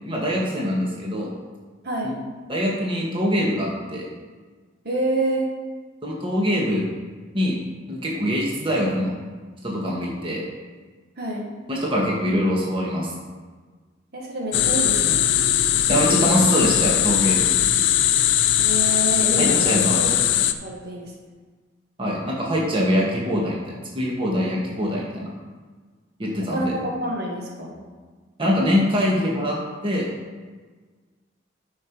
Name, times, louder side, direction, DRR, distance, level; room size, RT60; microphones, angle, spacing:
voice 1, 0.0-1.3 2.5-4.1 6.0-6.8 7.3-7.6 7.9-9.1 9.6-10.4 11.7-13.1 15.9-17.5 19.4-20.2 22.0-25.3 26.2-26.7 28.4-29.6 29.8-30.1, equal, 30° right, -4 dB, 1.6 m, -23 dB
voice 2, 4.8-5.5 11.2-11.5 14.1-15.2 18.6-20.2 20.6-21.1 26.5-27.8, right 1 dB, 55° right, -2 dB, 1.7 m, -27 dB
sound 1, 14.5-20.5, left 11 dB, 65° left, 0.5 m, -20 dB
10.5 x 5.6 x 4.6 m, 1.4 s
head